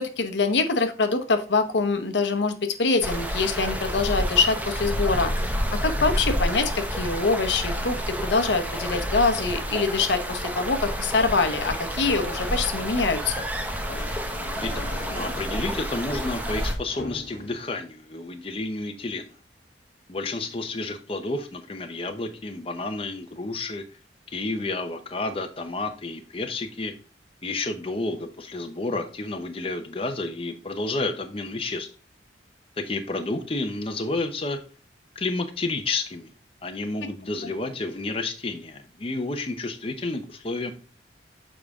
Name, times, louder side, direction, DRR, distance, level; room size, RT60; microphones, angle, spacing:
voice 1, 0.0-13.5, left 4 dB, 75° left, 8 dB, 0.9 m, -24 dB
sound 1, 3.0-16.7, equal, 10° right, 0.8 m, -29 dB
sound 2, 13.7-17.7, left 2 dB, 50° left, 1.1 m, -40 dB
voice 2, 14.6-19.2 20.1-23.8 24.3-26.9 27.4-31.9 32.8-34.6 35.2-36.3 36.6-40.7, left 2 dB, 30° left, 6 dB, 0.7 m, -30 dB
7.1 x 5.0 x 3.5 m, 0.37 s
head